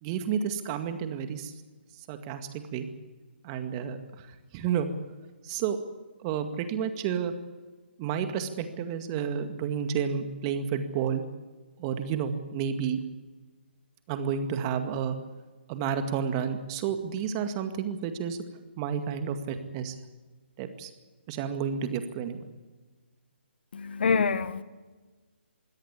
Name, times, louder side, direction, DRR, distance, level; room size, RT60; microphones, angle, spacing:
voice 1, 0.0-1.5 2.1-2.9 3.4-4.9 5.4-5.8 6.2-7.3 8.0-11.2 11.8-13.0 14.1-15.2 15.7-18.4 18.8-20.0 20.6-20.9 21.3-22.4, right 7 dB, 25° right, 2.1 m, -31 dB
voice 2, 23.7-24.6, left 5 dB, 60° left, 1.3 m, -26 dB
22.5 x 17.0 x 8.5 m
figure-of-eight pair, 145°, 6 cm